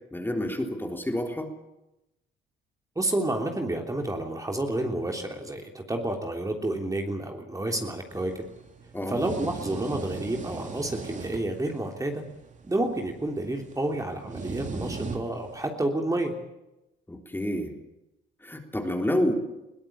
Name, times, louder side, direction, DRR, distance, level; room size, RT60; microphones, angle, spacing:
voice 1, 0.1-1.5 8.9-9.2 17.1-17.7 18.4-19.3, left 1 dB, 10° left, 3 dB, 3.6 m, -28 dB
voice 2, 2.9-8.3 9.1-12.2 12.6-16.3, right 1 dB, 15° right, 3 dB, 3.3 m, -30 dB
sound 1, 8.1-15.6, right 4 dB, 40° right, 3.1 m, -39 dB
22.0 x 17.5 x 8.8 m, 0.93 s
cardioid pair, 90°, 20 cm